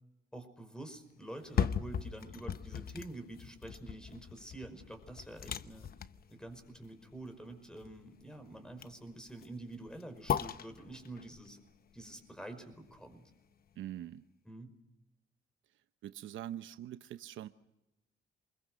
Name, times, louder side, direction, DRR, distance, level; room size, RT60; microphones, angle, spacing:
voice 1, 0.3-5.9 6.3-11.6 11.9-13.2 14.5-14.7, right 1 dB, 5° left, 5.4 m, -47 dB
sound 1, 1.3-13.3 13.7-13.8, left 8 dB, 50° left, 0.9 m, -39 dB
voice 2, 13.8-14.2 16.0-17.5, right 12 dB, 80° right, 0.9 m, -43 dB
28.0 x 22.0 x 6.4 m
cardioid pair, 90°, 20 cm